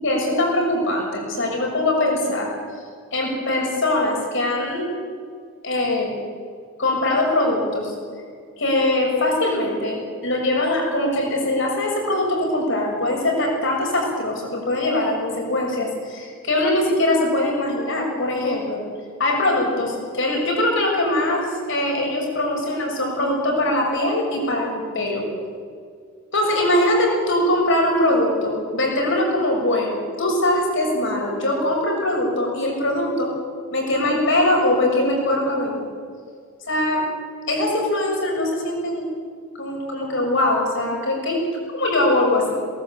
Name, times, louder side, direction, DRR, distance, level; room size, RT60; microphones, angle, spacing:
voice 1, 0.0-2.5 3.1-4.9 5.6-6.1 6.8-7.9 8.6-18.8 19.2-25.3 26.3-33.3 33.7-35.8 36.7-37.1 37.5-39.1 39.6-41.5 41.7-42.6, left 1 dB, 60° left, 0 dB, 6.7 m, -22 dB
22.5 x 19.0 x 8.5 m, 2.1 s
head